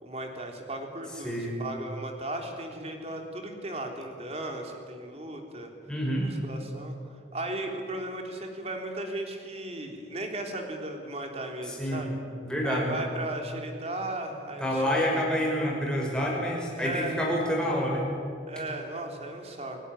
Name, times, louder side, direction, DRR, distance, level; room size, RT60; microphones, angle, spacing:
voice 1, 0.0-5.7 6.2-6.9 7.3-12.1 12.7-15.1 16.8-17.2 18.5-19.8, right 2 dB, 35° right, 3 dB, 3.5 m, -36 dB
voice 2, 1.2-1.6 5.9-6.3 11.6-12.0 12.4-12.9 14.6-18.1, equal, 5° left, -2 dB, 6.1 m, -28 dB
29.5 x 18.0 x 9.9 m, 2.3 s
head